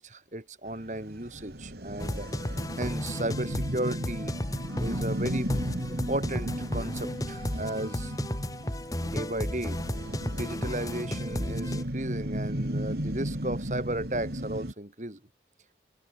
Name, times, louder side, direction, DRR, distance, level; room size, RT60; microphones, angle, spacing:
voice 1, 0.0-2.3 2.8-4.3 4.8-5.6 5.9-8.1 9.0-9.8 10.3-15.2, right 1 dB, 40° right, 2.6 m, -35 dB
sound 1, 0.7-14.7, right 1 dB, 65° right, 3.0 m, -35 dB
sound 2, 2.0-11.8, left 1 dB, 20° left, 1.7 m, -34 dB
head